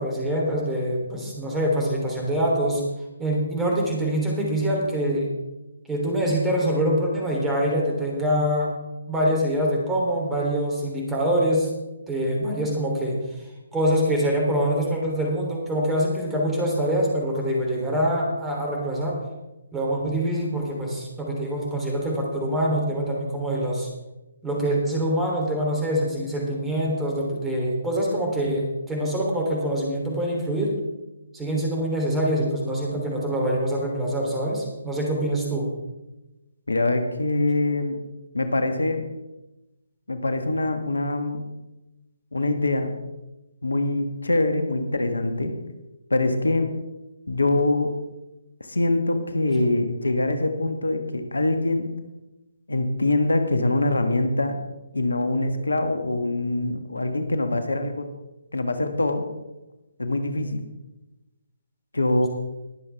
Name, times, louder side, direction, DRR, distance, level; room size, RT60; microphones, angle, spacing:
voice 1, 0.0-2.8 3.2-5.3 5.9-8.7 9.1-11.7 12.1-13.2 13.7-19.2 19.7-23.9 24.4-30.7 31.3-35.7, equal, 10° right, -2 dB, 3.3 m, -24 dB
voice 2, 36.7-38.0 38.3-39.0 40.1-41.5 42.3-43.0 43.6-45.6 46.1-46.7 47.3-47.9 48.6-51.9 52.7-54.6 54.9-58.1 58.5-59.2 60.0-60.6 61.9-62.3, left 2 dB, 80° left, 7 dB, 1.5 m, -24 dB
21.5 x 7.6 x 3.5 m, 1.0 s
figure-of-eight pair, 140°, 0 cm